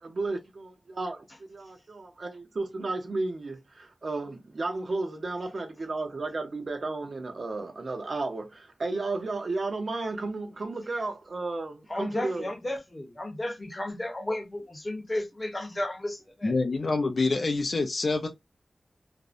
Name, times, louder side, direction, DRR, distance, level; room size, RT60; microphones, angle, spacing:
voice 1, 0.0-1.2 1.5-12.5, right 3 dB, 65° right, 0.6 m, -33 dB
voice 2, 11.9-16.5, left 1 dB, 30° left, 0.9 m, -33 dB
voice 3, 16.4-18.3, left 3 dB, 65° left, 0.4 m, -26 dB
2.6 x 2.1 x 2.4 m
wide cardioid pair, 80°, 0 cm